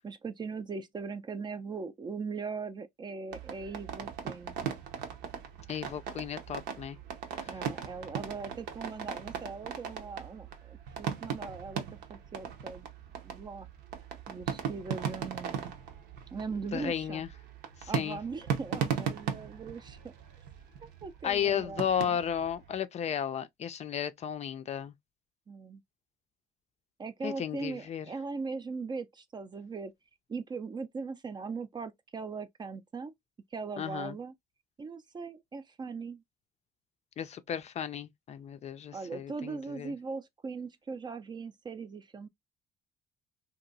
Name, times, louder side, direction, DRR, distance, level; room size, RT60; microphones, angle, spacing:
voice 1, 0.0-4.6 7.5-12.9 13.2-13.7 14.3-15.7 16.3-17.2 17.9-20.0 20.8-22.2 25.5-25.8 27.0-29.9 30.3-33.1 33.5-34.3 34.8-36.2 38.9-42.3, right 4 dB, 25° right, 0.4 m, -40 dB
sound 1, 3.3-22.8, right 7 dB, 80° right, 0.8 m, -38 dB
voice 2, 5.7-7.0 7.3-7.6 16.7-17.3 17.8-18.2 21.2-24.9 27.2-28.1 33.8-34.2 37.2-39.9, left 9 dB, 40° left, 0.4 m, -34 dB
2.9 x 2.6 x 2.5 m
cardioid pair, 110°, 17 cm